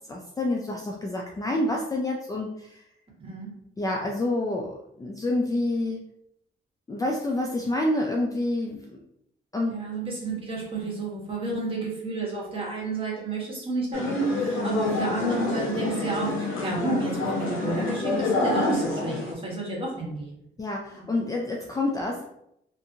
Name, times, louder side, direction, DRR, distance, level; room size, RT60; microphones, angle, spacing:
voice 1, 0.1-2.5 3.8-6.0 6.9-9.0 9.5-9.8 20.6-22.2, left 2 dB, 20° left, -1 dB, 0.4 m, -28 dB
voice 2, 3.2-3.5 9.6-20.4 20.9-21.0, right 2 dB, 25° right, -3 dB, 1.3 m, -30 dB
sound 1, 13.9-19.3, left 2 dB, 80° left, 0.8 m, -28 dB
2.6 x 2.5 x 2.7 m, 0.77 s
cardioid pair, 90°, 20 cm